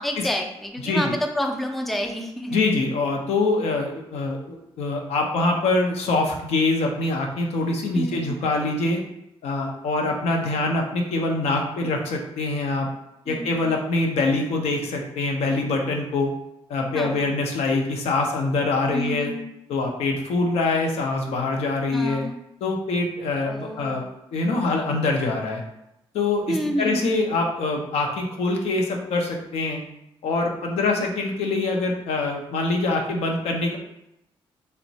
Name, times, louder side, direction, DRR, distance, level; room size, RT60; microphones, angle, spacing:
voice 1, 0.0-2.6 7.9-8.4 13.3-13.7 16.9-17.2 18.9-19.5 21.9-22.4 23.5-24.1 26.5-27.3, equal, ahead, 3 dB, 0.3 m, -29 dB
voice 2, 0.8-1.2 2.5-9.0 9.4-12.9 13.3-16.3 16.7-19.3 19.7-22.2 22.6-24.1 24.3-25.6 26.1-29.8 30.2-33.8, left 3 dB, 85° left, 1 dB, 0.5 m, -24 dB
2.9 x 2.1 x 2.6 m, 0.83 s
cardioid pair, 90°, 10 cm